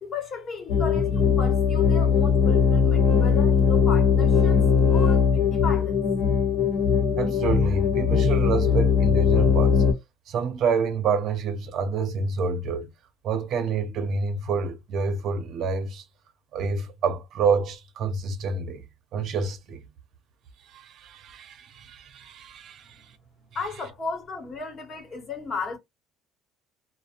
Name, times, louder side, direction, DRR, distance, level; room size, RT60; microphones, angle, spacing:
voice 1, 0.0-4.6 4.9-6.0 23.5-25.8, left 4 dB, 40° left, 1.0 m, -35 dB
sound 1, 0.7-9.9, left 6 dB, 60° left, 0.8 m, -20 dB
voice 2, 7.2-9.9 10.3-12.9 13.2-16.0 16.5-18.8 19.1-19.8 20.7-23.1, right 5 dB, 60° right, 0.6 m, -28 dB
2.6 x 2.0 x 2.5 m
cardioid pair, 105°, 0 cm